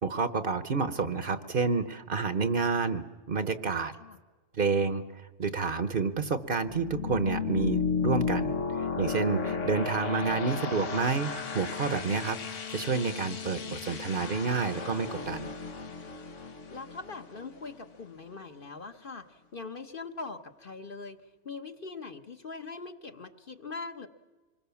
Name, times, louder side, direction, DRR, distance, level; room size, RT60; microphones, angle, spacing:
voice 1, 0.0-3.9 4.5-5.0 5.4-15.5, right 4 dB, 50° right, 11 dB, 1.0 m, -29 dB
sound 1, 5.6-18.2, left 5 dB, 85° left, 1.6 m, -34 dB
voice 2, 9.5-9.8 16.7-24.1, left 4 dB, 50° left, 6 dB, 1.3 m, -42 dB
26.0 x 21.5 x 7.1 m, 1.3 s
omnidirectional pair, 1.2 m